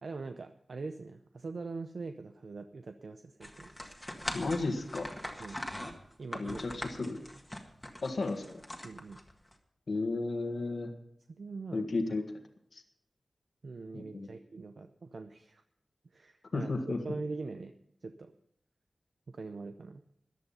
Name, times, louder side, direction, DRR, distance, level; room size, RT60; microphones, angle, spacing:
voice 1, 0.0-3.7 5.4-5.6 6.2-7.1 8.8-9.2 11.3-11.9 13.6-15.6 16.1-17.7 18.0-18.3 19.3-20.0, right 3 dB, 65° right, 7 dB, 0.7 m, -43 dB
Plastic Bend, 3.4-9.5, left 1 dB, 10° left, 1.7 m, -42 dB
voice 2, 4.3-5.1 6.3-7.2 8.0-8.6 9.9-10.9 11.7-12.2 12.7-12.8 13.9-14.3 16.5-17.0, left 3 dB, 60° left, 5 dB, 1.7 m, -33 dB
14.5 x 10.5 x 5.6 m, 0.73 s
wide cardioid pair, 115°, 0 cm